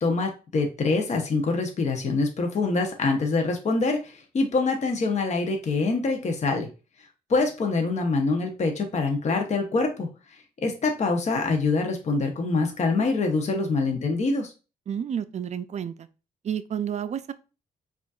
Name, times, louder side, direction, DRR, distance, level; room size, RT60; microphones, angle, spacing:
voice 1, 0.0-6.7 7.3-10.1 10.6-14.5, left 3 dB, 45° left, 0.8 m, -25 dB
voice 2, 14.9-16.1 16.4-17.3, right 8 dB, 45° right, 0.4 m, -30 dB
5.0 x 2.5 x 2.4 m
cardioid pair, 75°, 16 cm